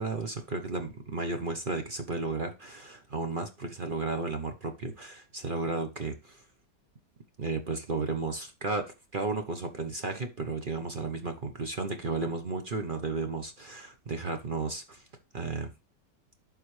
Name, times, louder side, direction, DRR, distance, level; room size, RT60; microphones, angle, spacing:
voice 1, 0.0-6.4 7.4-15.0 15.3-15.7, right 3 dB, 40° right, 0.8 m, -33 dB
11.5 x 4.0 x 3.2 m
omnidirectional pair, 1.9 m